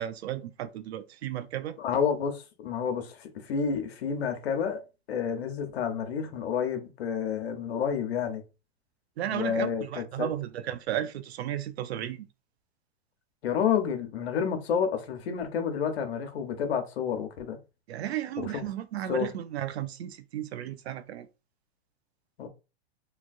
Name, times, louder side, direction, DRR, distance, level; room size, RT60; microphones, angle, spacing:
voice 1, 0.0-1.8 9.2-12.3 17.9-21.3, right 11 dB, 85° right, 0.5 m, -34 dB
voice 2, 1.8-4.8 5.1-8.4 9.3-10.3 13.4-17.6 18.4-18.6 19.1-19.3 22.4-22.5, left 7 dB, 80° left, 0.9 m, -29 dB
3.1 x 2.3 x 2.5 m
hypercardioid pair, 150°, 31 cm